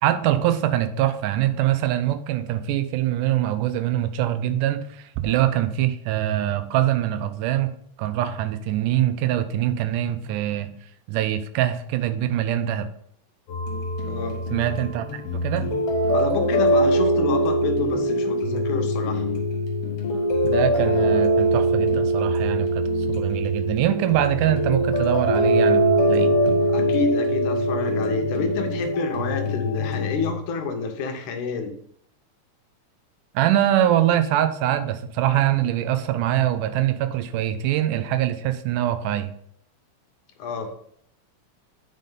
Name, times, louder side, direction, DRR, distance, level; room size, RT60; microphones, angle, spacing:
voice 1, 0.0-7.7 8.0-10.7 11.1-12.9 14.5-15.1 15.4-15.7 20.4-26.3 33.3-39.3, right 12 dB, 85° right, 10 dB, 2.2 m, -23 dB
sound 1, 13.5-30.3, right 1 dB, 55° left, 1.9 m, -22 dB
voice 2, 14.0-14.4 16.1-19.2 26.7-31.7 40.4-40.7, left 5 dB, 75° left, 5 dB, 2.3 m, -29 dB
9.2 x 5.5 x 3.8 m, 0.67 s
omnidirectional pair, 3.7 m